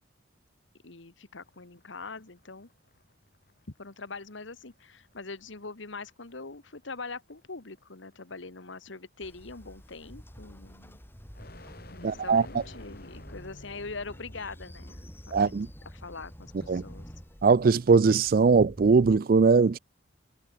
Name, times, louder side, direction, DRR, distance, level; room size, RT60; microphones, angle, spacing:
voice 1, 0.8-2.7 3.8-11.0 11.9-17.1, left 3 dB, 70° left, 1.5 m, -43 dB
sound 1, 1.4-14.9, left 1 dB, 50° left, 6.7 m, -55 dB
Train, 9.2-19.2, equal, 10° left, 5.1 m, -48 dB
voice 2, 12.0-12.4 15.3-15.7 16.7-16.8 17.4-19.8, right 4 dB, 45° right, 0.4 m, -20 dB
head